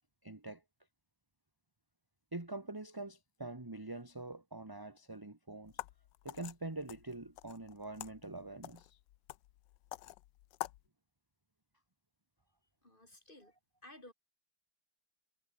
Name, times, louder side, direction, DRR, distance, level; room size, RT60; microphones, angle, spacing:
voice 1, 0.2-0.6 2.3-5.7 6.2-9.0, right 2 dB, 10° right, 1.6 m, -45 dB
sound 1, 5.6-10.9, left 15 dB, 75° left, 1.3 m, -48 dB
voice 2, 12.8-13.5 13.8-14.1, left 1 dB, 25° left, 5.0 m, -55 dB
omnidirectional pair, 2.1 m